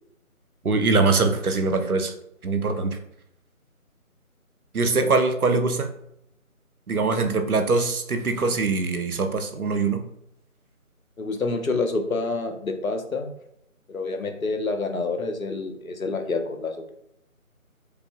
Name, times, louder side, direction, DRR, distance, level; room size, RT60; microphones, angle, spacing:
voice 1, 0.6-2.1 2.4-3.0 4.7-5.9 6.9-10.0, right 3 dB, 90° right, 7 dB, 0.8 m, -23 dB
voice 2, 11.2-13.3 13.9-16.9, left 3 dB, 70° left, 6 dB, 0.9 m, -28 dB
5.0 x 2.2 x 2.9 m, 0.75 s
figure-of-eight pair, 165°, 42 cm